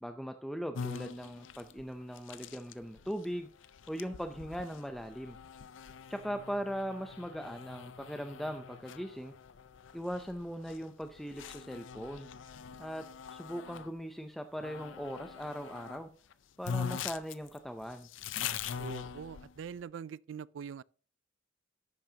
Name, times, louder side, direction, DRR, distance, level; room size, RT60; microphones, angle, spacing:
voice 1, 0.0-3.5 3.9-5.4 6.1-9.3 9.9-12.3 12.8-13.0 13.3-16.1 16.6-18.1, equal, ahead, 0.5 m, -39 dB
sound 1, 0.7-13.9 14.6-16.0 16.3-16.4 16.6-19.8, left 7 dB, 80° left, 0.5 m, -43 dB
voice 2, 18.8-20.8, right 7 dB, 75° right, 0.3 m, -43 dB
11.5 x 8.6 x 2.8 m
head